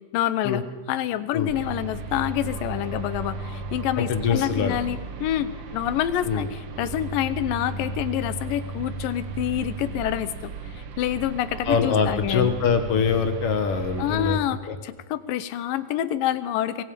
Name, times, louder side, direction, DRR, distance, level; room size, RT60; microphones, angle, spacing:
voice 1, 0.1-0.6 0.9-12.5 14.0-16.8, left 12 dB, 85° left, 13 dB, 2.6 m, -27 dB
sound 1, 1.5-14.4, right 4 dB, 80° right, 1.0 m, -35 dB
voice 2, 4.0-4.8 6.2-6.4 11.6-14.4 14.7-14.8, left 6 dB, 60° left, 7 dB, 1.7 m, -23 dB
24.5 x 20.5 x 5.2 m, 1.3 s
omnidirectional pair, 3.8 m